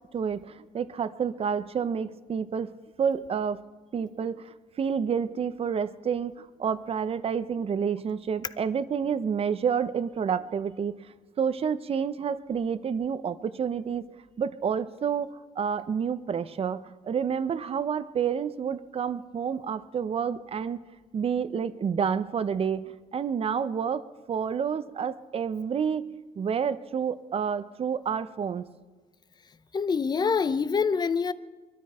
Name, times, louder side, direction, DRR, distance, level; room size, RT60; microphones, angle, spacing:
voice 1, 0.1-2.7 3.0-3.6 3.9-10.9 11.4-14.0 14.4-20.8 21.1-26.1 26.4-28.6, right 7 dB, 35° right, 0.7 m, -29 dB
voice 2, 29.7-31.3, left 5 dB, 25° left, 0.6 m, -25 dB
22.5 x 13.0 x 4.4 m
cardioid pair, 110°, 17 cm